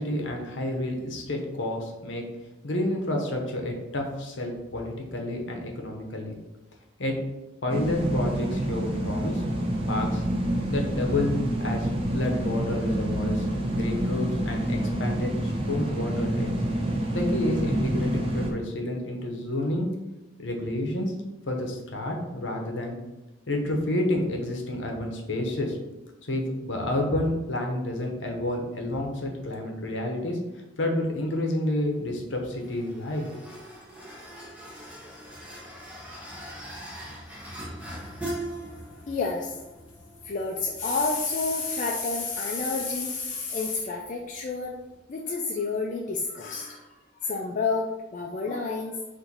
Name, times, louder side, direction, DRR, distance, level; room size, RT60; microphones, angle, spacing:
voice 1, 0.0-2.2 2.6-6.4 7.0-7.1 7.6-9.4 9.9-10.2 10.7-13.5 13.7-16.6 17.1-19.9 20.4-21.1 21.5-23.0 23.5-25.8 26.3-30.4 30.8-33.4, left 1 dB, 70° left, 2 dB, 0.8 m, -29 dB
sound 1, 7.7-18.5, right 1 dB, 30° right, 0.6 m, -27 dB
sound 2, 31.6-45.0, right 1 dB, 10° right, 1.0 m, -42 dB
voice 2, 39.1-39.6 40.2-44.8 45.1-46.9 47.2-49.0, left 4 dB, 40° left, -1 dB, 0.3 m, -29 dB
4.3 x 2.6 x 3.9 m, 1.0 s
head